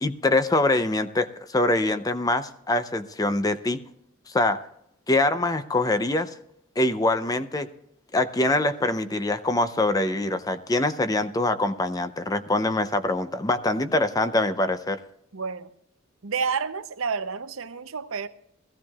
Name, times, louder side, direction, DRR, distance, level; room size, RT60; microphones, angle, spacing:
voice 1, 0.0-3.8 4.3-4.6 5.1-6.3 6.8-7.7 8.1-15.0, left 2 dB, 20° left, 0.5 m, -24 dB
voice 2, 15.3-15.7 16.2-18.3, right 5 dB, 80° right, 0.7 m, -29 dB
20.5 x 15.0 x 2.4 m
head